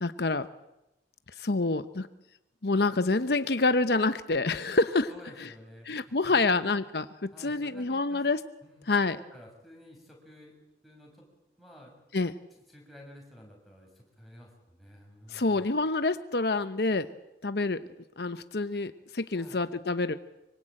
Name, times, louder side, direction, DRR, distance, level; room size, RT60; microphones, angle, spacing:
voice 1, 0.0-0.5 1.4-2.1 2.6-5.1 5.9-8.4 8.9-9.2 12.1-12.3 15.3-17.1 17.4-17.8 18.2-20.1, left 3 dB, 65° left, 11 dB, 0.9 m, -27 dB
voice 2, 5.1-6.8 7.3-8.2 8.6-10.5 10.8-11.3 11.6-11.9 12.7-15.6 19.3-19.6, equal, ahead, 1 dB, 7.1 m, -52 dB
25.5 x 24.5 x 8.9 m, 0.91 s
head